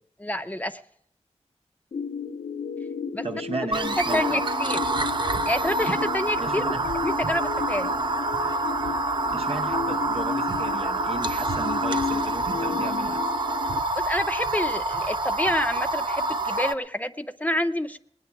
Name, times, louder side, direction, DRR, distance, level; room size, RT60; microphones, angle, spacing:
voice 1, 0.2-0.8 3.1-3.3 4.1-4.8 5.5-6.7 7.0-7.9 14.0-18.0, left 1 dB, 15° left, 8 dB, 0.6 m, -28 dB
sound 1, 1.9-13.8, left 5 dB, 80° left, 0.7 m, -33 dB
voice 2, 3.2-4.4 6.4-6.8 9.3-13.2, right 3 dB, 60° right, 4 dB, 0.9 m, -34 dB
sound 2, 3.7-16.7, right 2 dB, 45° right, 0.6 m, -27 dB
19.5 x 9.7 x 5.9 m, 0.72 s
wide cardioid pair, 95°, 11 cm